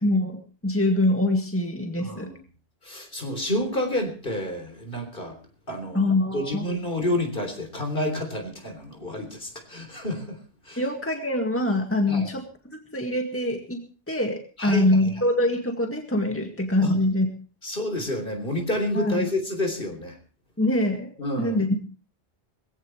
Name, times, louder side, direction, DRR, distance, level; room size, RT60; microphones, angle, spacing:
voice 1, 0.0-2.3 5.9-6.7 10.8-12.4 12.7-13.8 14.1-17.3 18.9-19.3 20.6-21.1 21.4-21.8, left 1 dB, 15° left, 4 dB, 2.0 m, -24 dB
voice 2, 2.0-2.4 2.8-5.4 5.7-6.1 6.3-10.4 10.6-10.8 12.1-12.3 14.6-14.9 16.8-17.0 17.6-20.2 21.2-21.7, left 1 dB, 60° left, 5 dB, 3.8 m, -29 dB
21.0 x 16.0 x 3.2 m, 0.36 s
omnidirectional pair, 1.0 m